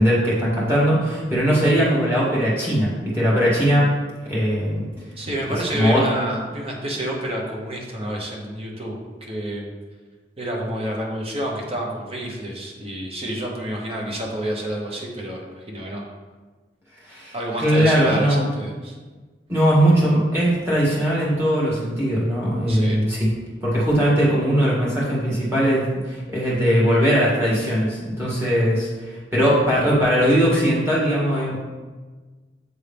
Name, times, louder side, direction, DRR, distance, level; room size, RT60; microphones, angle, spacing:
voice 1, 0.0-3.9 4.3-4.9 5.7-6.0 17.1-17.3 17.6-18.5 19.5-23.3 23.6-31.6, equal, 15° right, -7 dB, 1.9 m, -20 dB
voice 2, 5.2-9.7 10.4-16.0 17.3-19.0 22.7-23.0, right 1 dB, 35° right, -2 dB, 1.1 m, -29 dB
7.9 x 3.6 x 3.4 m, 1.3 s
head